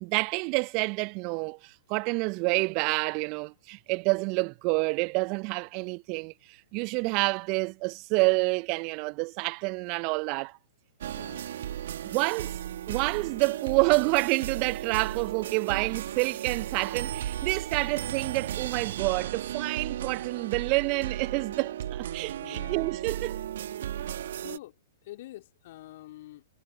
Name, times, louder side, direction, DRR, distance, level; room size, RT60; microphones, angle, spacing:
voice 1, 0.0-10.6 12.1-12.6 12.9-23.4, right 31 dB, 40° right, 0.6 m, -28 dB
sound 1, 11.0-24.6, right 11 dB, 60° right, 1.8 m, -35 dB
voice 2, 11.1-11.5 22.4-22.9 24.3-26.5, left 16 dB, 50° left, 3.0 m, -46 dB
figure-of-eight pair, 110°, 0 cm